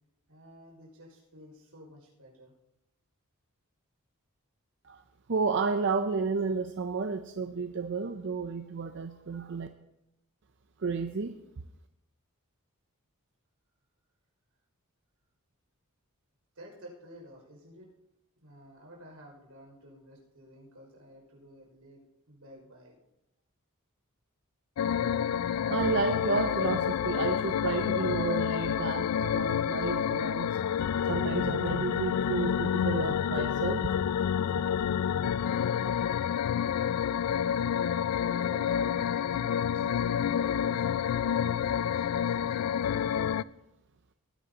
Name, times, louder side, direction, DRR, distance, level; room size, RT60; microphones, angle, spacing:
voice 1, 0.3-2.5 16.5-17.9 18.4-23.0 37.3-43.7, equal, 85° right, -1 dB, 5.8 m, -52 dB
voice 2, 5.3-9.7 10.8-11.3 25.7-30.6 31.1-33.9 34.6-34.7 36.8-37.0, right 4 dB, 55° right, 7 dB, 0.6 m, -31 dB
circus music loop by kris klavenes, 24.8-43.4, left 8 dB, 85° left, 0.3 m, -29 dB
19.5 x 11.0 x 2.9 m, 0.87 s
head